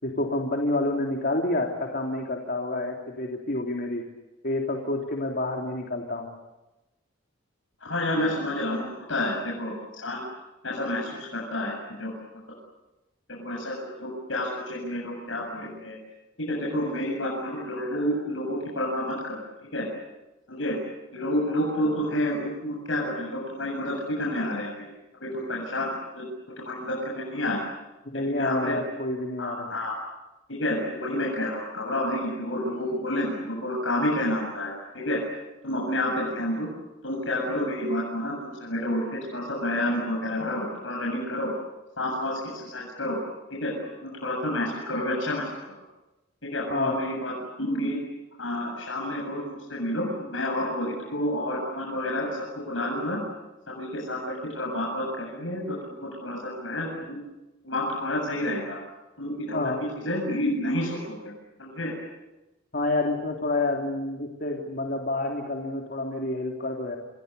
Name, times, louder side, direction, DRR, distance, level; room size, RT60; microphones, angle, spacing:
voice 1, 0.0-4.0 4.4-6.3 28.1-29.7 46.7-47.0 59.5-59.8 62.7-67.0, left 2 dB, 50° left, 1 dB, 3.4 m, -28 dB
voice 2, 7.8-10.2 10.6-11.7 12.0-12.1 13.3-16.0 16.5-19.4 19.7-19.8 20.5-20.8 21.1-24.9 25.2-26.3 26.6-27.6 28.3-28.8 29.4-29.9 30.5-35.2 35.6-36.7 37.0-41.5 42.0-43.2 43.5-45.5 46.4-48.0 48.4-52.3 52.7-53.2 53.7-57.2 57.6-58.8 59.2-61.3 61.6-61.9, left 1 dB, 80° left, -2 dB, 7.7 m, -29 dB
29.0 x 28.0 x 6.9 m, 1.0 s
head